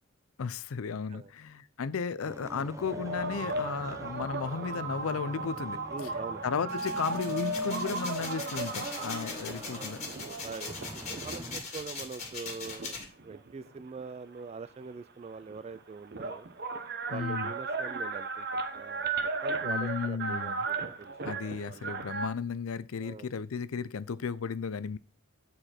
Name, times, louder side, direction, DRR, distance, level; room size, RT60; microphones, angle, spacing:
voice 1, 0.4-10.0 17.1-17.5 19.6-20.6 21.2-25.0, left 5 dB, 85° left, 0.5 m, -35 dB
sound 1, 2.2-11.6, equal, 15° right, 0.7 m, -45 dB
sound 2, 2.8-11.7 12.3-14.0 15.2-15.3 15.5-22.3, right 3 dB, 50° right, 0.9 m, -36 dB
voice 2, 5.9-6.4 8.9-9.4 10.2-10.7 11.2-13.0 13.2-16.5 17.1-22.0 23.0-23.3, right 4 dB, 30° right, 0.3 m, -43 dB
sound 3, 6.7-13.0, left 4 dB, 35° left, 2.1 m, -40 dB
8.8 x 4.7 x 4.3 m
head